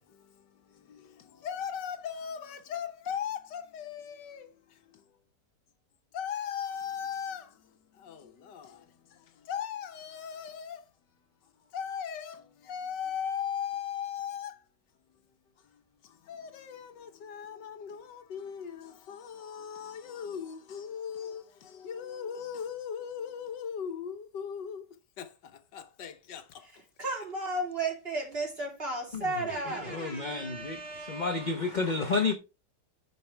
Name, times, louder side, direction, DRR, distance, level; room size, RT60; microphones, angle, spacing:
voice 1, 0.0-5.0 6.1-10.8 11.6-14.6 15.6-24.9 25.2-26.7, left 8 dB, 75° left, 1.6 m, -39 dB
voice 2, 26.6-31.8, right 2 dB, 35° right, 3.5 m, -35 dB
voice 3, 29.9-30.8 31.1-32.3, left 4 dB, 35° left, 0.7 m, -30 dB
13.5 x 5.5 x 3.4 m
omnidirectional pair, 1.9 m